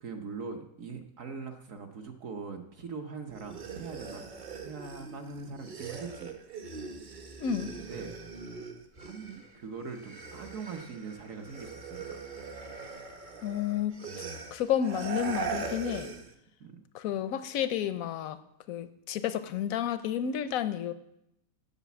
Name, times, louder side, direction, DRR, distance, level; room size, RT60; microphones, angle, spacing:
voice 1, 0.0-4.3 4.6-6.3 7.8-8.2 9.0-12.2 16.6-16.8, right 5 dB, 55° right, 4 dB, 1.1 m, -41 dB
sound 1, 3.3-9.5 9.8-16.3, right 5 dB, 40° right, 0.7 m, -41 dB
voice 2, 7.4-7.7 13.4-13.9 14.5-16.1 16.9-18.4 18.7-20.9, left 9 dB, 70° left, 12 dB, 0.8 m, -31 dB
8.2 x 6.5 x 8.2 m, 0.80 s
omnidirectional pair, 1.9 m